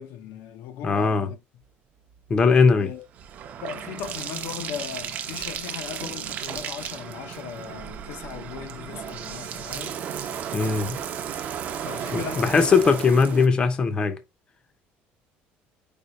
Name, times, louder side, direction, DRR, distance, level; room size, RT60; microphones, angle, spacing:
voice 1, 0.0-1.4 2.7-3.0 3.6-10.0 11.8-13.6, left 9 dB, 70° left, 0.6 m, -38 dB
voice 2, 0.8-1.3 2.3-2.9 10.5-11.0 12.1-14.2, left 5 dB, 25° left, 0.5 m, -20 dB
Bathtub (filling or washing), 2.1-13.5, right 8 dB, 40° right, 0.5 m, -34 dB
5.0 x 2.2 x 4.0 m
cardioid pair, 160°, 4 cm